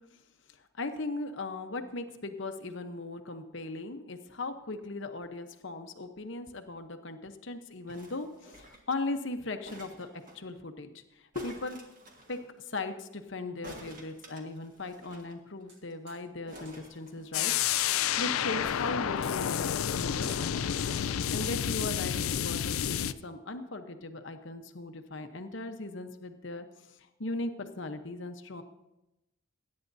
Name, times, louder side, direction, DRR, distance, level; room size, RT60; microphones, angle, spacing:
voice 1, 0.8-10.1 10.3-10.9 11.2-11.8 12.3-17.5 17.8-20.8 21.0-28.6, left 2 dB, 60° left, 7 dB, 0.9 m, -38 dB
sound 1, 7.9-9.0 9.7-10.4 11.3-12.4 13.6-15.3 15.6-15.7 15.9-16.1 16.5-17.7 18.6-19.5 20.2-21.2 21.9-22.0, right 1 dB, 40° right, 1.7 m, -50 dB
sound 2, 15.3-15.8 16.1-16.3 16.7-16.8 17.6-17.8 18.2-18.3 18.6-18.9 20.3-20.4 20.7-21.2, right 2 dB, 70° right, 4.9 m, -55 dB
sound 3, 17.3-23.1, left 9 dB, 85° left, 0.4 m, -30 dB
22.0 x 9.7 x 2.7 m, 0.94 s
head